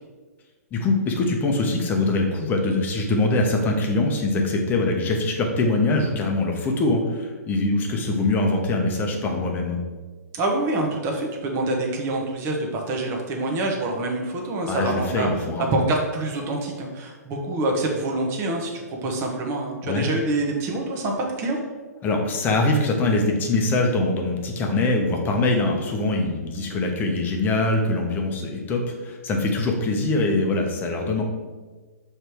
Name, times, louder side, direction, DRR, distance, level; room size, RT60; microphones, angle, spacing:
voice 1, 0.7-9.8 14.7-15.8 19.9-20.1 22.0-31.2, left 2 dB, 20° left, 2 dB, 0.9 m, -23 dB
voice 2, 10.3-15.3 15.7-21.6, right 2 dB, 25° right, 0 dB, 1.1 m, -26 dB
6.5 x 3.4 x 4.5 m, 1.4 s
hypercardioid pair, 130°, 9 cm